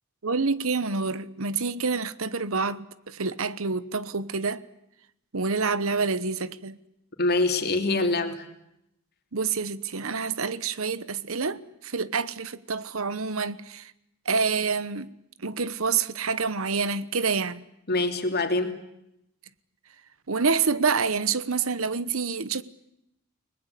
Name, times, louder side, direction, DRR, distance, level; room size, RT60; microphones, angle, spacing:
voice 1, 0.2-4.6 5.3-6.8 9.3-13.9 14.3-15.1 15.4-17.6 20.3-22.6, right 4 dB, 70° right, 1.1 m, -27 dB
voice 2, 7.2-8.4 17.9-18.7, left 2 dB, 45° left, 3.0 m, -24 dB
30.0 x 20.0 x 8.4 m
head